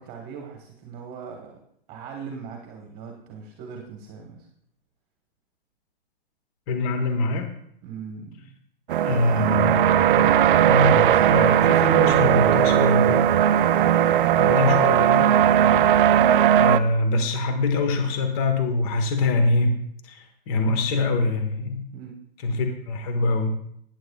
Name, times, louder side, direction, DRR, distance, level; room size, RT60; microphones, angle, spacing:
voice 1, 0.0-1.6 1.9-4.5 7.8-8.6 11.1-11.2 15.6-15.9 21.9-22.2, right 6 dB, 30° right, 2 dB, 1.3 m, -40 dB
voice 2, 6.7-7.5 9.0-9.8 10.2-10.3 10.6-13.3 14.4-15.3 16.6-19.8 20.0-21.9 22.4-23.5, left 3 dB, 40° left, 6 dB, 1.3 m, -24 dB
sound 1, 8.9-16.8, right 10 dB, 55° right, 0.6 m, -18 dB
14.5 x 9.6 x 2.3 m, 0.71 s
hypercardioid pair, 130°, 31 cm